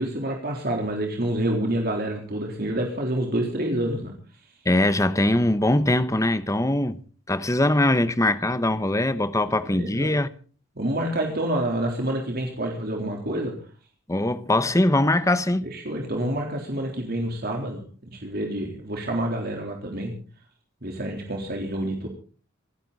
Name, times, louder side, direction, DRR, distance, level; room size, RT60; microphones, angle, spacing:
voice 1, 0.0-4.1 9.7-10.1 10.8-13.5 15.6-20.1 20.8-22.1, right 1 dB, 50° right, 3.7 m, -28 dB
voice 2, 4.6-7.0 7.3-10.3 14.1-15.6, left 1 dB, 15° left, 1.0 m, -22 dB
26.5 x 11.5 x 4.1 m
head